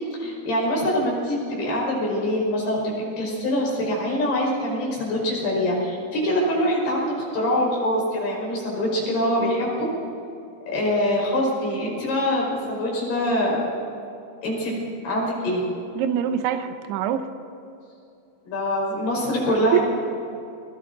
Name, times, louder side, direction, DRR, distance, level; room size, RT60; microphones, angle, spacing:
voice 1, 0.1-9.9 10.7-13.6 14.4-15.6 18.5-19.8, left 1 dB, 65° left, -3 dB, 7.4 m, -24 dB
voice 2, 16.0-17.3 19.7-19.8, right 10 dB, 75° right, 7 dB, 2.9 m, -24 dB
30.0 x 22.0 x 4.1 m, 2.7 s
omnidirectional pair, 5.1 m